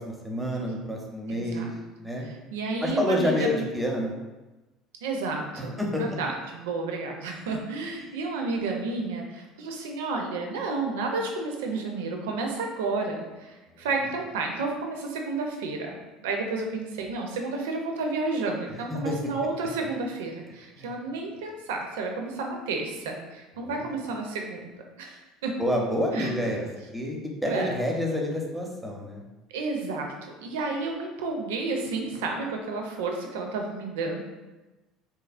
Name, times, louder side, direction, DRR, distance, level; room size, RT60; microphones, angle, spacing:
voice 1, 0.0-1.7 2.0-2.3 2.8-4.1 5.6-6.0 19.0-19.2 20.8-20.9 23.6-23.9 25.6-26.7 26.9-29.2, left 1 dB, 5° right, 0 dB, 0.7 m, -28 dB
voice 2, 1.3-1.7 2.2-3.7 5.0-5.7 6.0-25.6 26.1-26.3 27.4-27.7 29.5-34.2, right 3 dB, 75° right, 2 dB, 0.4 m, -31 dB
2.8 x 2.4 x 2.4 m, 1.1 s
hypercardioid pair, 65°, 0 cm